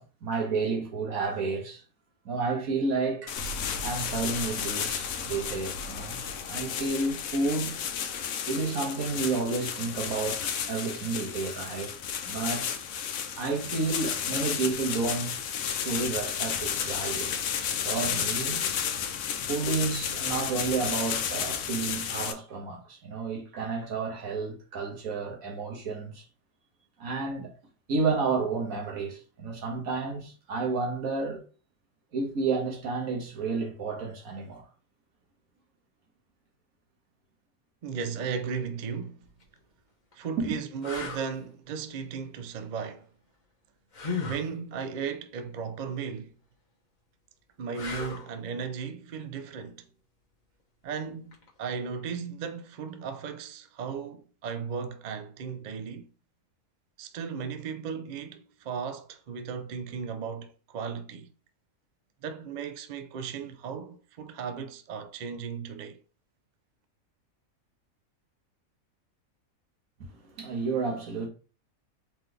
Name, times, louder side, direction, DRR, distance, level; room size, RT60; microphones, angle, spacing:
voice 1, 0.0-1.8 2.2-3.3 3.8-6.2 6.5-7.8 8.5-11.9 12.2-12.8 13.4-17.4 17.8-18.7 19.4-26.2 27.0-27.5 27.9-31.4 32.1-34.7 40.4-40.6 70.0-71.3, right 4 dB, 85° right, 1.6 m, -31 dB
sound 1, 3.3-22.3, left 8 dB, 80° left, 1.1 m, -32 dB
Explosion, 3.4-8.5, left 1 dB, 60° left, 1.2 m, -43 dB
voice 2, 37.8-39.2 40.1-43.1 44.3-46.3 47.6-49.9 50.8-56.1 57.0-61.3 62.2-66.0, right 6 dB, 65° right, 0.4 m, -36 dB
sound 2, 39.2-39.4 40.1-40.2 40.8-41.3 43.9-44.5 47.7-48.3 51.3-51.5, left 4 dB, 35° left, 1.1 m, -35 dB
4.1 x 3.8 x 3.3 m
omnidirectional pair, 1.5 m